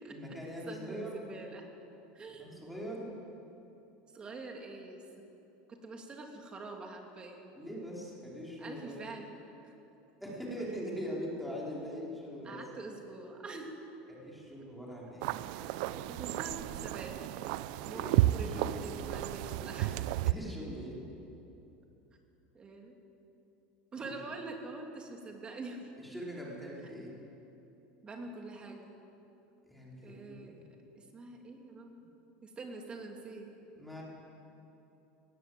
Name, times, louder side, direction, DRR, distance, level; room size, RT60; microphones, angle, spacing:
voice 1, 0.0-1.1 2.4-3.1 7.5-9.1 10.2-12.6 14.1-15.3 17.9-19.1 20.2-21.0 24.0-24.1 26.0-27.2 29.7-30.6 33.7-34.0, equal, ahead, -5 dB, 4.5 m, -42 dB
voice 2, 0.6-1.6 2.1-2.7 4.1-5.3 5.7-7.5 8.6-9.3 9.6-9.7 12.4-13.7 15.5-17.2 17.8-18.1 18.3-20.1 22.5-22.9 23.9-25.9 26.9-27.0 28.0-29.0 30.0-30.6 30.9-33.5, right 3 dB, 20° right, 2 dB, 2.9 m, -45 dB
sound 1, 15.2-20.3, right 15 dB, 70° right, 0.6 m, -32 dB
19.0 x 18.0 x 8.0 m, 2.9 s
supercardioid pair, 140°, 4 cm